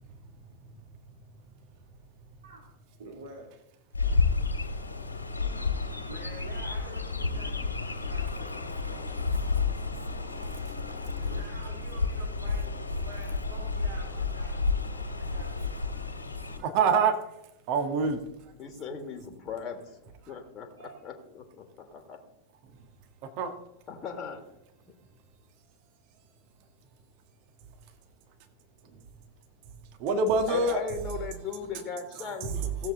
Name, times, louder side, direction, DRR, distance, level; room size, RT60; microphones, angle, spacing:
voice 1, 3.0-3.5 6.1-9.2 11.3-15.8 20.8-21.0 22.5-22.6, right 3 dB, 65° right, -1 dB, 2.4 m, -48 dB
Chirp tweet, 3.9-16.6, left 4 dB, 80° left, 2.2 m, -31 dB
voice 2, 16.7-17.1 17.7-18.2 23.4-23.5 30.0-30.8 32.2-32.7, right 4 dB, 45° right, 6 dB, 1.5 m, -25 dB
voice 3, 18.5-22.2 23.9-24.4 24.9-25.0 30.5-32.9, left 6 dB, 30° left, 4 dB, 1.7 m, -38 dB
16.5 x 7.6 x 3.8 m, 0.83 s
figure-of-eight pair, 90°, 0 cm